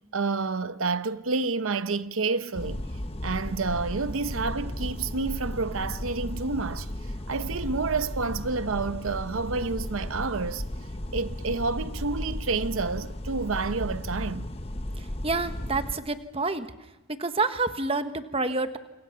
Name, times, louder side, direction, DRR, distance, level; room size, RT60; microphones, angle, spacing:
voice 1, 0.0-2.8 3.2-10.6 11.1-14.5, right 4 dB, 90° right, 0.9 m, -29 dB
sound 1, 2.5-15.9, left 1 dB, 30° left, 1.2 m, -35 dB
voice 2, 15.0-16.7 17.2-18.8, right 3 dB, 30° right, 1.3 m, -28 dB
28.5 x 28.0 x 5.8 m
head